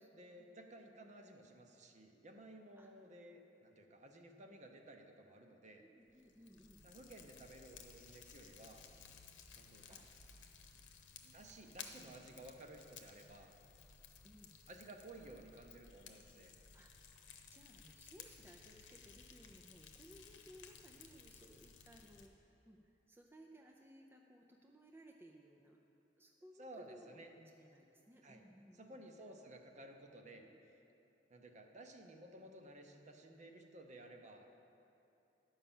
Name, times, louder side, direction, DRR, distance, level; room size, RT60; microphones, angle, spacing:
voice 1, 0.0-5.9 6.8-8.8 9.6-10.1 11.2-13.5 14.7-16.5 26.6-27.3 28.2-28.4 28.7-30.5 31.3-34.5, right 1 dB, 40° right, 4 dB, 0.8 m, -56 dB
voice 2, 5.8-6.8 9.9-10.1 11.8-11.9 14.2-14.5 16.7-16.9 17.5-25.8 26.2-29.0 30.4-30.6, right 1 dB, 15° right, 0 dB, 0.5 m, -61 dB
Fire, 6.1-22.3, left 6 dB, 80° left, 0.9 m, -58 dB
11.0 x 5.5 x 7.1 m, 2.9 s
head